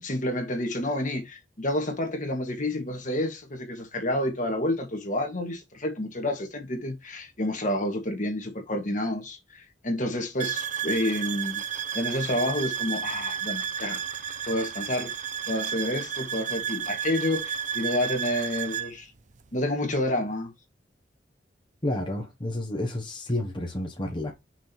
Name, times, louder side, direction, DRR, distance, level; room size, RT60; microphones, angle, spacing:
voice 1, 0.0-11.6 11.9-14.0 14.5-15.1 15.5-19.1 19.5-20.5, left 1 dB, 45° left, 2.0 m, -29 dB
sound 1, 10.4-18.9, right 8 dB, 45° right, 0.6 m, -32 dB
voice 2, 21.8-24.3, left 1 dB, 30° left, 1.3 m, -30 dB
6.2 x 3.7 x 4.5 m
head